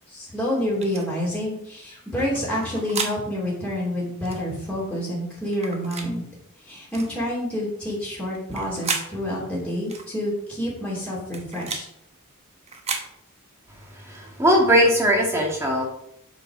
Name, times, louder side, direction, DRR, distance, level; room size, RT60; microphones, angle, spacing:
voice 1, 0.1-6.2 6.6-11.8, equal, 5° left, -8 dB, 3.1 m, -28 dB
sound 1, 0.8-1.0 2.3-3.2 4.2-4.4 5.5-6.1 6.9-7.1 8.3-9.1 9.9-10.1 11.1-11.9 12.7-13.1, right 4 dB, 30° right, 1.2 m, -32 dB
voice 2, 14.1-15.9, equal, 15° right, -2 dB, 2.0 m, -19 dB
8.2 x 5.3 x 6.1 m, 0.74 s
head